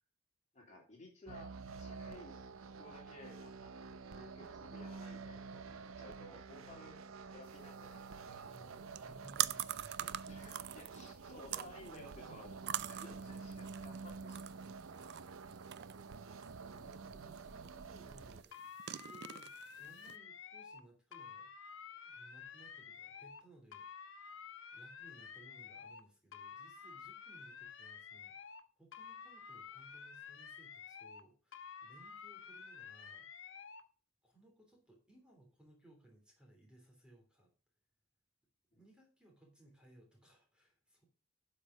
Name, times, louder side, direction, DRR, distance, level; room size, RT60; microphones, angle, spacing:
voice 1, 0.5-2.4 2.8-7.0 7.3-8.5 10.3-14.8, left 1 dB, 35° left, -1 dB, 3.2 m, -56 dB
sound 1, 1.3-18.4, right 4 dB, 90° right, 0.7 m, -49 dB
sound 2, 7.5-20.2, right 12 dB, 55° right, 0.4 m, -45 dB
voice 2, 8.3-10.6 16.3-18.6 18.9-21.5 22.0-24.4 24.7-33.3 34.2-37.5 38.7-41.0, right 1 dB, 5° right, 0 dB, 3.1 m, -63 dB
sound 3, 18.5-20.8 21.1-23.4 23.7-26.0 26.3-28.6 28.9-31.2 31.5-33.8, left 6 dB, 75° left, 1.0 m, -51 dB
11.5 x 5.4 x 4.9 m, 0.37 s
head